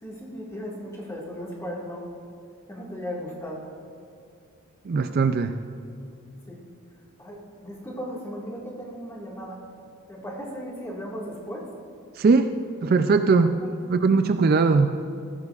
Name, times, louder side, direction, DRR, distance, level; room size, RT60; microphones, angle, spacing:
voice 1, 0.0-2.0 2.7-3.7 6.5-6.6 7.2-9.6 10.1-11.7 13.5-13.6, equal, 15° left, -4 dB, 1.9 m, -36 dB
voice 2, 4.9-5.5 12.2-12.5 12.8-13.6 13.9-14.9, right 4 dB, 45° right, 8 dB, 0.3 m, -20 dB
16.0 x 13.5 x 2.4 m, 2.4 s
head